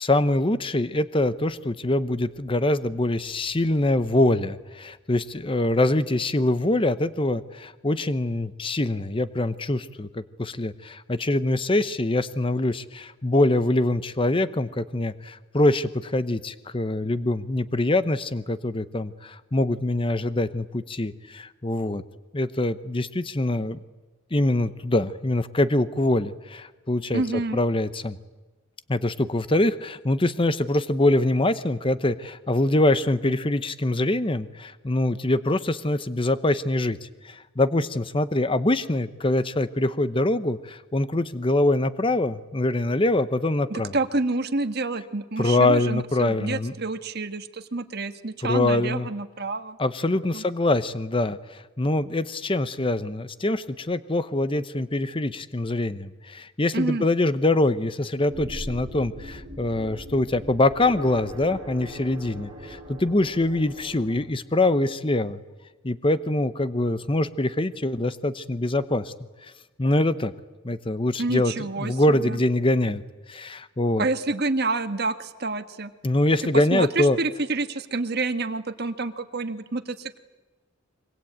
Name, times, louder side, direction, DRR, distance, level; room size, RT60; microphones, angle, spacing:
voice 1, 0.0-22.0 22.3-23.8 24.3-27.2 27.5-28.2 28.9-37.0 37.2-43.9 45.4-46.7 48.4-49.1 49.8-65.4 65.8-69.1 69.8-70.3 70.6-71.5 71.8-73.0 73.3-74.1 76.0-77.2, left 2 dB, 25° left, 13 dB, 0.9 m, -24 dB
voice 2, 27.1-27.6 43.7-49.8 50.3-50.4 56.7-57.0 71.2-72.4 74.0-75.9 76.5-80.2, right 3 dB, 50° right, 9 dB, 1.5 m, -28 dB
sound 1, 58.2-64.2, equal, 30° right, 5.3 m, -40 dB
25.0 x 24.0 x 8.8 m, 1.2 s
head